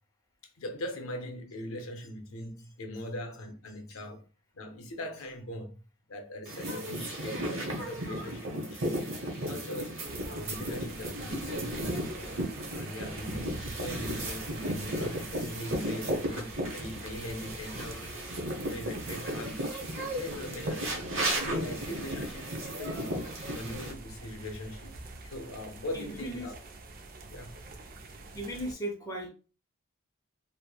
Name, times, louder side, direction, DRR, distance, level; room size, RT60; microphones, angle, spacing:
voice 1, 0.6-4.2 4.5-5.8 6.1-9.2 9.4-10.0 10.3-12.4 12.7-18.2 18.4-19.9 20.2-21.1 21.3-23.2 23.6-24.9 25.2-26.6 27.3-27.6, left 1 dB, 80° left, 0.6 m, -41 dB
sound 1, 6.5-23.9, right 1 dB, 65° right, 0.8 m, -35 dB
sound 2, 10.0-28.7, right 2 dB, 45° right, 0.4 m, -46 dB
voice 2, 25.9-26.5 28.3-29.3, right 1 dB, 15° left, 0.4 m, -37 dB
2.9 x 2.1 x 2.2 m
head